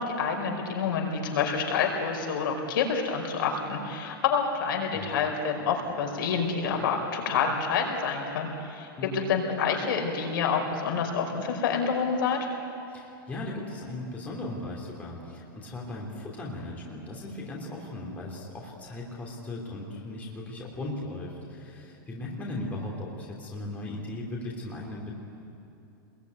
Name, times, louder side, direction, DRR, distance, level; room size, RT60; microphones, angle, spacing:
voice 1, 0.0-8.9 9.1-12.5, left 6 dB, 70° left, 2 dB, 5.1 m, -28 dB
voice 2, 8.9-9.4 12.9-25.1, left 1 dB, 15° left, -2 dB, 3.0 m, -37 dB
26.0 x 21.5 x 9.5 m, 2.9 s
supercardioid pair, 170°, 12 cm